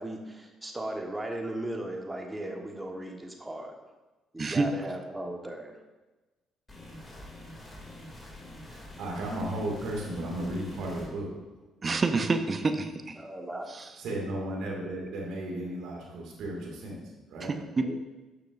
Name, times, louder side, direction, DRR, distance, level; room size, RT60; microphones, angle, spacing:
voice 1, 0.0-3.7 4.3-5.7 13.2-13.7 17.8-18.0, right 1 dB, 15° right, 2 dB, 1.5 m, -37 dB
sound 1, 6.7-11.1, left 1 dB, 25° left, 2.7 m, -46 dB
voice 2, 8.6-11.3 11.8-11.9 14.0-17.0 17.3-17.5, right 1 dB, 65° right, -2 dB, 2.2 m, -35 dB
voice 3, 11.8-13.2 13.7-13.8 17.5-17.8, right 3 dB, 35° right, 7 dB, 0.8 m, -27 dB
12.0 x 6.6 x 2.6 m, 1.2 s
hypercardioid pair, 45°, 0 cm